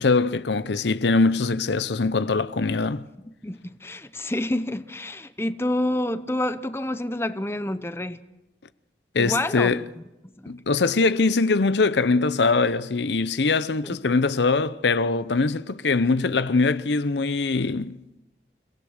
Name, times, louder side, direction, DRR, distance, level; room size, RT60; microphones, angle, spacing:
voice 1, 0.0-3.0 9.1-9.9 10.5-18.0, left 3 dB, 80° left, 0.7 m, -22 dB
voice 2, 3.4-8.2 9.2-9.7 10.4-10.5 13.8-14.0, left 1 dB, 15° left, 0.8 m, -28 dB
29.5 x 17.0 x 6.5 m
head